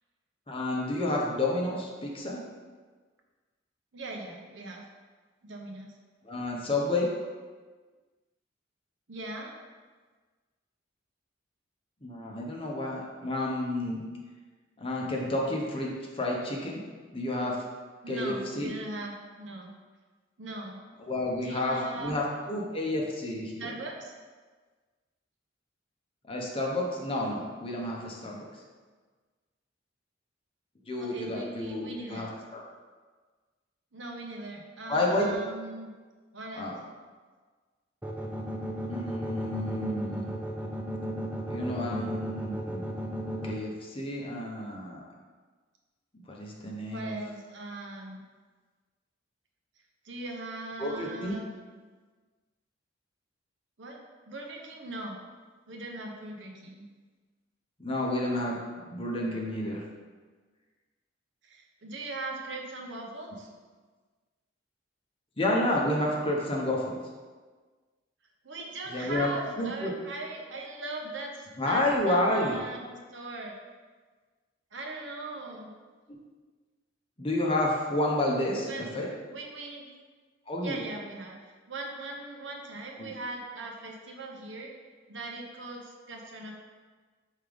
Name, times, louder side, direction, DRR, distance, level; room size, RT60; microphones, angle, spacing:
voice 1, 0.5-2.4 6.2-7.1 12.0-14.0 14.8-16.8 17.1-17.6 18.1-18.7 21.0-23.7 26.3-28.4 30.9-32.6 34.9-35.4 36.6-36.7 38.9-40.3 41.5-42.9 43.4-45.1 46.1-47.2 50.8-51.4 57.8-59.8 65.4-67.0 68.9-69.3 69.6-69.9 71.6-72.6 77.2-79.1 80.5-80.8 83.0-83.1, left 1 dB, 30° left, -2 dB, 0.9 m, -30 dB
voice 2, 3.9-4.8 5.4-5.9 9.1-9.5 18.0-19.7 20.4-20.8 21.4-22.2 23.6-24.1 31.0-32.3 33.9-35.9 36.3-36.7 41.7-42.0 46.9-48.2 50.0-51.5 53.8-54.0 54.3-55.2 55.7-56.9 61.4-63.5 68.4-73.5 74.7-75.7 78.6-78.9 79.3-79.9 80.6-84.7 85.1-86.5, right 2 dB, 70° right, 1 dB, 0.9 m, -39 dB
sound 1, 38.0-43.5, equal, 10° right, 0.5 m, -34 dB
5.5 x 3.7 x 5.2 m, 1.4 s
head